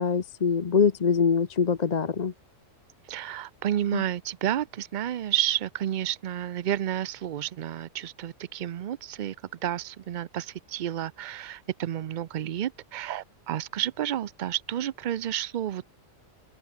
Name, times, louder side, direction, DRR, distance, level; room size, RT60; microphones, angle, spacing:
voice 1, 0.0-2.3 3.9-4.0, left 6 dB, 40° left, 0.8 m, -24 dB
voice 2, 3.1-9.4 9.6-15.9, right 11 dB, 80° right, 0.4 m, -31 dB
open air
omnidirectional pair, 1.4 m